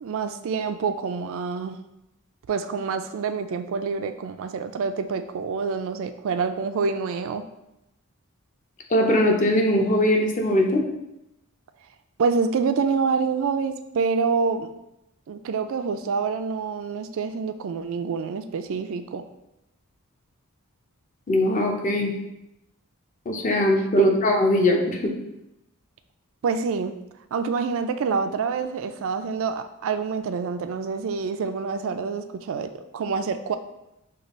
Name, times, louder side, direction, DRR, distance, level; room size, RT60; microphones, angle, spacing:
voice 1, 0.0-1.8 2.5-7.4 12.2-14.7 15.3-19.3 24.0-24.1 26.4-27.0 27.3-33.6, right 5 dB, 60° right, 9 dB, 0.3 m, -27 dB
voice 2, 8.9-10.8 21.3-22.1 23.3-25.1, left 1 dB, 35° left, 1 dB, 0.6 m, -21 dB
6.5 x 2.4 x 3.0 m, 0.88 s
head